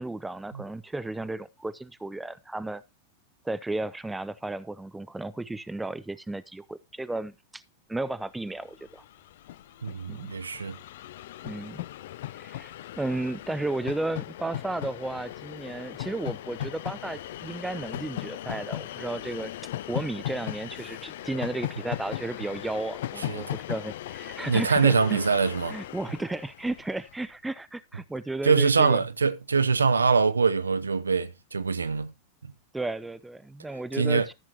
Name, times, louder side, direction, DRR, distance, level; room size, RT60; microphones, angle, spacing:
voice 1, 0.0-2.8 3.4-7.6 7.9-9.0 10.1-10.3 11.4-11.8 12.4-19.5 19.9-25.2 25.7-29.0 32.7-34.3, right 2 dB, 5° right, 0.6 m, -34 dB
Train, 8.5-8.6 8.7-27.2, left 13 dB, 55° left, 0.5 m, -38 dB
voice 2, 9.8-10.8 23.3-23.6 24.4-25.8 28.4-32.1 33.9-34.3, right 5 dB, 75° right, 0.8 m, -24 dB
14.0 x 7.3 x 2.9 m
figure-of-eight pair, 90°, 0 cm